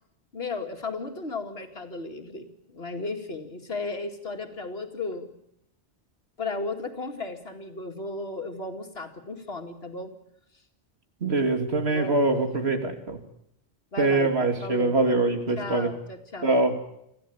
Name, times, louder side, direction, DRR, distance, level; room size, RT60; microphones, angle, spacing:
voice 1, 0.3-5.3 6.4-10.1 11.9-12.2 13.9-15.0 15.6-16.5, left 3 dB, 60° left, 5 dB, 2.6 m, -35 dB
voice 2, 11.2-13.2 14.0-15.9 16.4-16.7, right 2 dB, 65° right, 6 dB, 2.9 m, -23 dB
26.0 x 15.5 x 8.7 m, 0.77 s
omnidirectional pair, 1.2 m